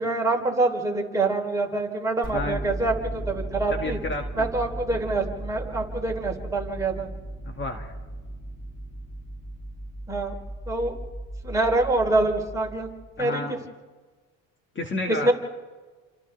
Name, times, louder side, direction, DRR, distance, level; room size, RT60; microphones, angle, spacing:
voice 1, 0.0-4.0 4.3-7.1 10.1-10.3 10.7-10.9 11.4-12.9 13.2-13.4 15.2-15.3, right 2 dB, 10° right, -1 dB, 3.8 m, -25 dB
sound 1, 2.2-13.2, right 1 dB, 15° left, 7.7 m, -36 dB
voice 2, 3.7-4.5 7.5-7.9 13.2-13.6 14.8-15.3, left 2 dB, 35° left, 3 dB, 2.1 m, -31 dB
29.0 x 26.5 x 3.5 m, 1.4 s
cardioid pair, 115°, 35 cm